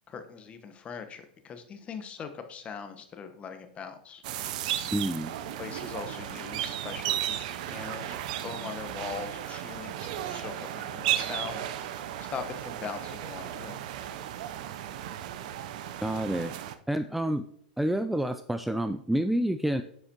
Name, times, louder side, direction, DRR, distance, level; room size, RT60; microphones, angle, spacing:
voice 1, 0.1-4.2 5.4-11.9 12.2-13.8, left 6 dB, 25° left, 7 dB, 1.2 m, -41 dB
sound 1, 4.2-16.7, right 11 dB, 55° right, 0.7 m, -35 dB
voice 2, 4.9-5.3 16.0-16.5 16.9-17.5 17.8-19.8, right 1 dB, 5° right, 9 dB, 0.4 m, -28 dB
9.7 x 7.9 x 3.0 m, 0.65 s
figure-of-eight pair, 100°, 5 cm